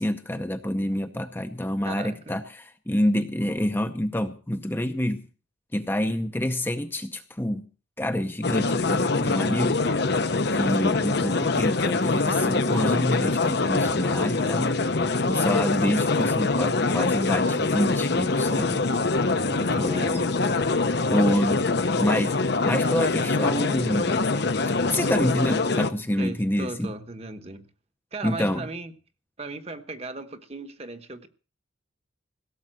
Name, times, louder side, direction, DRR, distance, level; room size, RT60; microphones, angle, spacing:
voice 1, 0.0-5.3 5.7-7.7 8.0-9.8 10.5-18.8 19.5-20.3 21.1-21.6 22.0-22.4 22.6-24.2 24.9-26.9 28.2-28.7, left 1 dB, 10° left, 7 dB, 0.7 m, -27 dB
voice 2, 1.8-2.4 19.5-20.2 26.2-27.7 28.1-28.9 29.4-31.3, right 2 dB, 30° right, 9 dB, 1.1 m, -37 dB
sound 1, 8.4-25.9, left 3 dB, 55° left, 0.9 m, -24 dB
16.5 x 7.2 x 7.6 m, 0.39 s
head